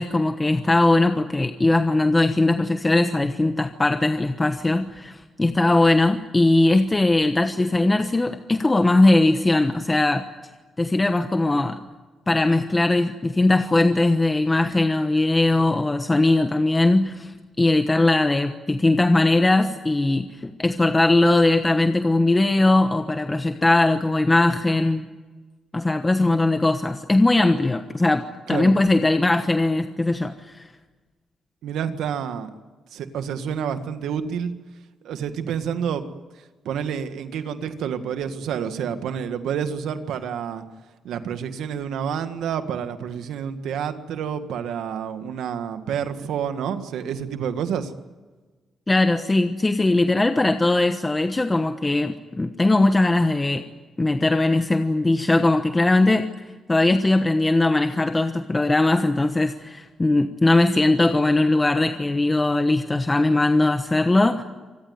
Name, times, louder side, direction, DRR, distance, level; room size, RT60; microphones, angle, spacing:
voice 1, 0.0-10.3 10.8-11.8 12.3-25.1 25.7-30.7 48.9-53.7 54.0-56.3 56.7-64.4, left 2 dB, 20° left, 8 dB, 1.1 m, -20 dB
voice 2, 31.6-32.6 32.9-34.5 35.0-36.1 36.6-40.6 41.0-47.9, right 8 dB, 90° right, 9 dB, 1.6 m, -28 dB
25.5 x 19.0 x 9.4 m, 1.3 s
cardioid pair, 110°, 0 cm